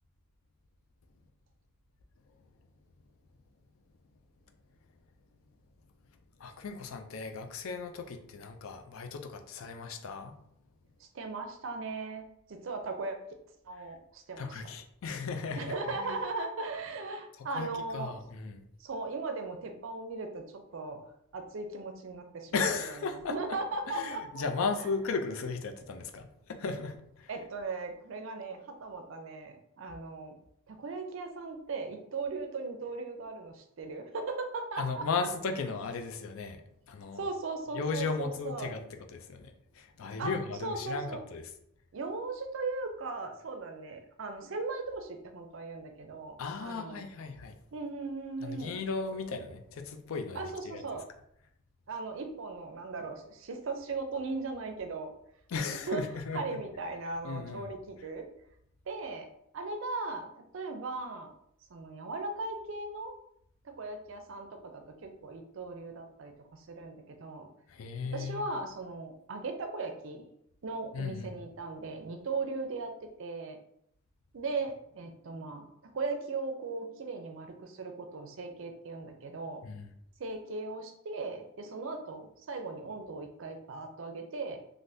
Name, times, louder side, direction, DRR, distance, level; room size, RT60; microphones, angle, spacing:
voice 1, 6.4-10.3 14.4-16.1 17.6-18.6 22.5-23.6 23.9-27.3 34.8-36.6 36.9-37.2 37.7-41.5 46.4-47.5 48.4-50.8 55.5-56.6 57.2-57.7 67.7-68.4 70.9-71.3 79.6-79.9, left 4 dB, 75° left, 6 dB, 0.4 m, -36 dB
voice 2, 11.1-13.2 13.7-14.6 15.6-18.2 18.8-21.1 21.3-24.4 24.8-24.9 27.3-30.3 30.7-35.1 37.2-38.7 40.2-40.3 40.6-41.2 41.9-47.1 47.7-48.8 50.3-51.1 51.9-55.1 55.9-56.0 56.3-58.3 58.9-59.3 59.5-61.3 61.7-63.1 63.6-67.5 68.1-70.2 70.6-73.6 74.3-79.6 80.2-84.6, right 3 dB, 65° right, 5 dB, 0.5 m, -38 dB
3.4 x 2.5 x 2.6 m, 0.73 s
head